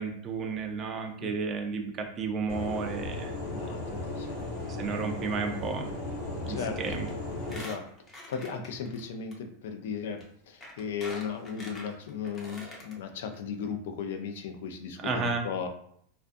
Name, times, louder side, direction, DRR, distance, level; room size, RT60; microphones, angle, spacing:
voice 1, 0.0-3.4 4.8-5.9 6.4-7.1 15.0-15.4, right 4 dB, 30° right, 4 dB, 0.4 m, -32 dB
sound 1, 2.5-7.6, left 2 dB, 60° left, 0.9 m, -36 dB
voice 2, 3.5-4.4 4.8-4.9 6.5-7.0 7.5-7.8 8.1-15.7, left 6 dB, 75° left, 6 dB, 0.4 m, -36 dB
Squeak, 6.8-7.1 7.4-9.0 9.3-9.4 10.2-10.3 10.6-12.9 13.3-13.4 13.6-13.7, left 1 dB, 20° left, 0.7 m, -45 dB
2.4 x 2.2 x 2.5 m, 0.65 s
supercardioid pair, 135°, 0 cm